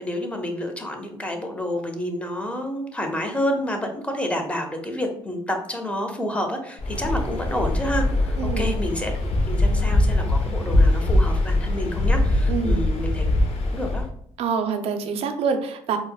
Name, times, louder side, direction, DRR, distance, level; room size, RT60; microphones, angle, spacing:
voice 1, 0.0-9.1 9.5-13.3 13.6-14.0, left 1 dB, 10° left, 3 dB, 0.7 m, -29 dB
Waves surf, 6.8-14.1, left 1 dB, 60° left, 0.6 m, -22 dB
voice 2, 8.4-8.7 12.5-12.9 14.4-16.0, right 6 dB, 60° right, 7 dB, 0.4 m, -26 dB
4.1 x 2.1 x 2.3 m, 0.68 s
supercardioid pair, 70°, 11 cm